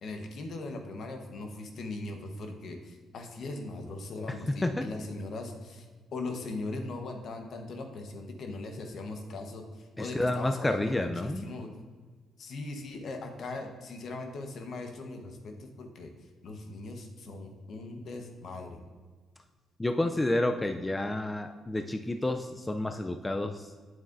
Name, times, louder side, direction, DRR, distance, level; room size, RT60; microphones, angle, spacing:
voice 1, 0.0-5.9 6.1-11.7 12.4-16.1 16.4-18.8, left 2 dB, 60° left, 4 dB, 1.1 m, -39 dB
voice 2, 4.5-4.8 10.0-11.5 19.8-23.7, left 1 dB, 15° left, 6 dB, 0.4 m, -30 dB
8.4 x 7.3 x 2.6 m, 1.5 s
cardioid pair, 90°, 0 cm